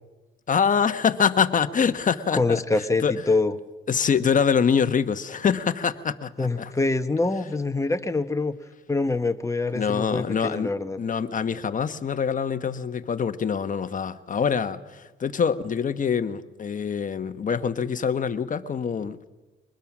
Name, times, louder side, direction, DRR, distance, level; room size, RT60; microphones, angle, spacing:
voice 1, 0.5-2.6 3.0-3.1 3.9-6.7 9.7-10.7 11.0-19.3, left 6 dB, 40° left, 10 dB, 1.2 m, -25 dB
voice 2, 2.4-3.5 6.4-8.5 8.9-11.0, left 3 dB, 15° left, 8 dB, 1.3 m, -25 dB
23.5 x 20.5 x 6.2 m, 1.2 s
cardioid pair, 90°, 20 cm